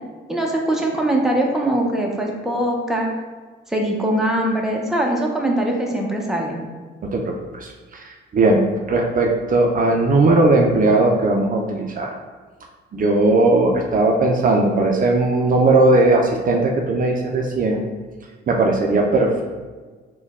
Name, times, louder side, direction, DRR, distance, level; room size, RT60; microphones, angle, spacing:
voice 1, 0.3-3.1 3.7-6.6, right 1 dB, ahead, -1 dB, 0.7 m, -22 dB
voice 2, 7.1-8.6 8.9-12.1 12.9-17.8 18.5-19.4, right 2 dB, 45° right, 1 dB, 0.5 m, -18 dB
4.3 x 2.2 x 3.5 m, 1.4 s
cardioid pair, 90°, 20 cm